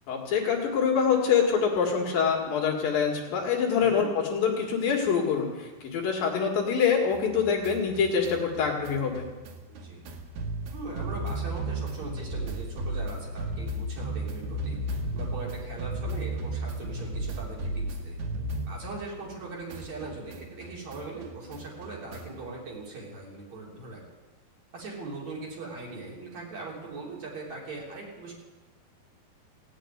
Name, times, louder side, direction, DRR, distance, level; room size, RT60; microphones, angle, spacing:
voice 1, 0.1-9.3, left 6 dB, 65° left, -1 dB, 3.6 m, -25 dB
sound 1, 7.1-19.4 19.7-22.5, right 1 dB, 90° right, 3.4 m, -35 dB
voice 2, 9.7-10.0 10.7-14.8 15.1-18.2 18.7-24.0 24.7-28.3, right 3 dB, 45° right, -3 dB, 4.2 m, -40 dB
17.0 x 7.9 x 9.7 m, 1.2 s
omnidirectional pair, 4.6 m